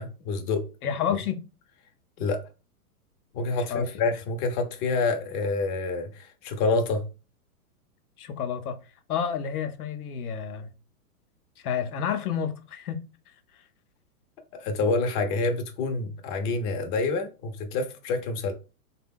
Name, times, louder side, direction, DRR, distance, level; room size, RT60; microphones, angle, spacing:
voice 1, 0.0-0.7 2.2-2.4 3.3-7.0 14.5-18.5, left 3 dB, 35° left, 0.6 m, -27 dB
voice 2, 0.8-1.4 3.7-3.9 8.2-8.8 9.1-10.7 11.6-13.0 13.5-13.6, left 8 dB, 75° left, 0.7 m, -30 dB
3.4 x 2.2 x 3.5 m
hypercardioid pair, 120°, 45 cm